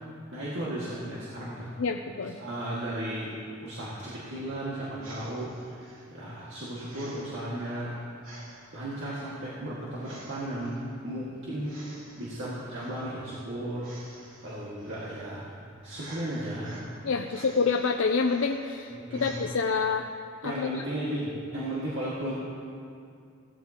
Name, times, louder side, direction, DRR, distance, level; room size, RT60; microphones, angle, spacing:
voice 1, 0.3-1.7 2.4-3.3 3.6-7.9 8.7-10.8 11.0-11.8 12.2-13.9 14.4-15.5 15.8-16.8 17.3-17.4 18.9-19.3 20.4-22.3, right 1 dB, 70° right, -8 dB, 1.9 m, -35 dB
voice 2, 1.8-2.4 17.0-20.1 20.4-20.8, left 4 dB, 85° left, 4 dB, 0.5 m, -27 dB
sound 1, 5.0-19.4, right 2 dB, 90° right, 2.8 m, -52 dB
17.0 x 12.5 x 2.9 m, 2.4 s
head